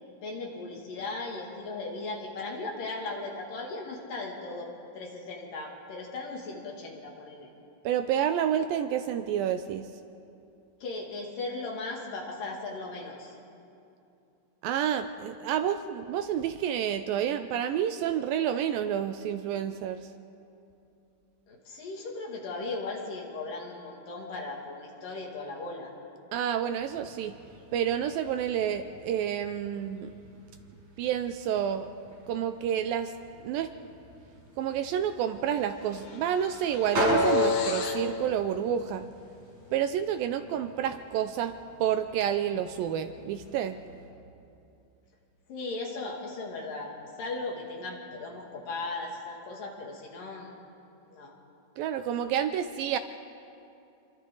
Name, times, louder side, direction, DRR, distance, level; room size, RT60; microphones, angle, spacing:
voice 1, 0.2-4.7 4.9-7.5 10.8-13.4 21.5-25.9 45.5-46.9 47.2-50.5 51.1-51.4, left 3 dB, 60° left, -1 dB, 4.1 m, -37 dB
voice 2, 7.9-9.9 14.6-20.1 26.3-27.3 27.7-30.1 31.0-31.9 32.3-33.1 33.4-33.7 34.6-39.1 39.7-41.5 41.8-43.8 51.8-53.0, right 9 dB, 80° right, 9 dB, 2.2 m, -29 dB
sound 1, 26.7-44.0, left 2 dB, 45° right, 8.7 m, -36 dB
sound 2, 34.9-35.1 35.4-38.1, left 6 dB, 90° left, 3.6 m, -41 dB
28.5 x 23.5 x 4.0 m, 2.7 s
omnidirectional pair, 4.5 m